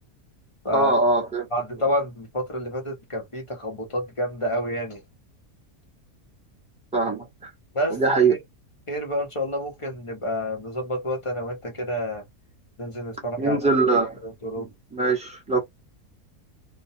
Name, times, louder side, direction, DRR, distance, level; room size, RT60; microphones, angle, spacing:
voice 1, 0.7-1.5 6.9-7.5 7.9-8.3 13.4-14.2 14.6-15.6, right 3 dB, 5° right, 0.9 m, -22 dB
voice 2, 1.5-5.0 7.7-8.0 8.9-12.2 12.8-13.7 14.2-14.7, equal, 25° left, 0.7 m, -29 dB
2.9 x 2.2 x 2.8 m
omnidirectional pair, 1.6 m